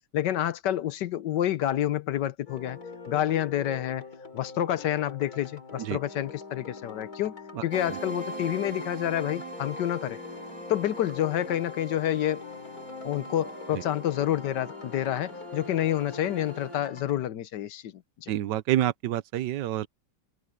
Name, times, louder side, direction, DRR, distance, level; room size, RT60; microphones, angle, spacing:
voice 1, 0.1-2.8 3.1-4.0 4.3-7.3 7.6-10.2 10.7-12.4 13.0-17.9 18.2-18.3, left 12 dB, 75° left, 1.5 m, -28 dB
sound 1, 2.5-17.2, left 5 dB, 55° left, 4.4 m, -43 dB
sound 2, 7.7-16.8, right 1 dB, 50° right, 3.7 m, -42 dB
voice 2, 18.3-19.9, right 13 dB, 80° right, 1.3 m, -28 dB
open air
omnidirectional pair, 1.9 m